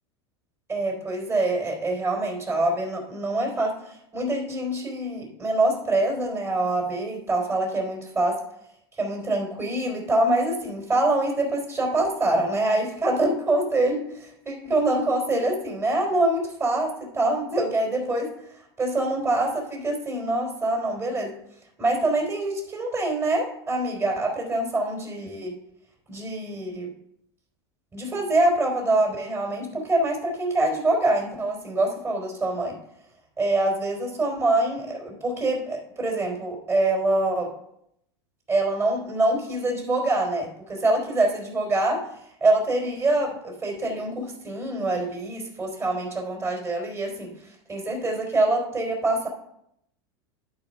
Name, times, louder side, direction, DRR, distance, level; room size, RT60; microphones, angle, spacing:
voice 1, 0.7-8.4 9.0-18.3 18.8-21.3 21.8-25.6 26.1-26.9 27.9-32.8 33.4-37.5 38.5-42.0 42.4-47.3 47.7-49.3, right 2 dB, 20° right, 0 dB, 3.6 m, -25 dB
11.0 x 4.9 x 5.5 m, 0.76 s
hypercardioid pair, 110°, 14 cm